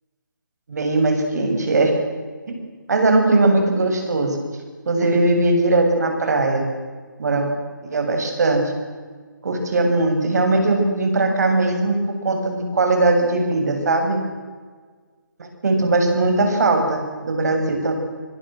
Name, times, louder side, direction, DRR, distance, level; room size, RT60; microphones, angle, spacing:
voice 1, 0.7-1.9 2.9-4.4 4.9-6.7 7.2-7.5 7.8-8.7 9.4-14.2 15.4-17.9, right 2 dB, 55° right, 4 dB, 7.5 m, -19 dB
29.5 x 22.0 x 7.8 m, 1.5 s
figure-of-eight pair, 150°, 11 cm